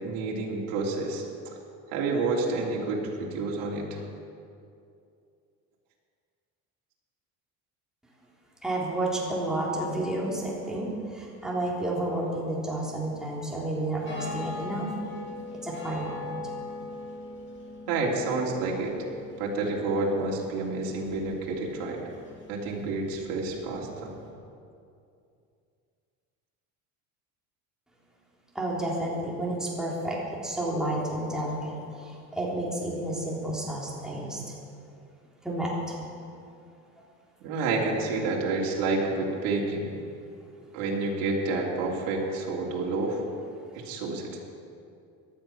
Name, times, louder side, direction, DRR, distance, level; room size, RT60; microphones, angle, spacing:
voice 1, 0.0-1.5 1.9-4.0 17.9-18.9 19.4-22.0 22.5-24.1 37.4-39.9 40.7-43.2 43.7-44.4, right 3 dB, 75° right, -3 dB, 3.2 m, -29 dB
voice 2, 8.6-14.9 15.6-16.3 28.6-31.7 32.0-34.4 35.4-36.0, right 1 dB, ahead, -5 dB, 3.5 m, -31 dB
sound 1, 14.0-24.3, left 3 dB, 35° left, 3.1 m, -42 dB
18.0 x 12.0 x 6.0 m, 2.5 s
cardioid pair, 135°, 35 cm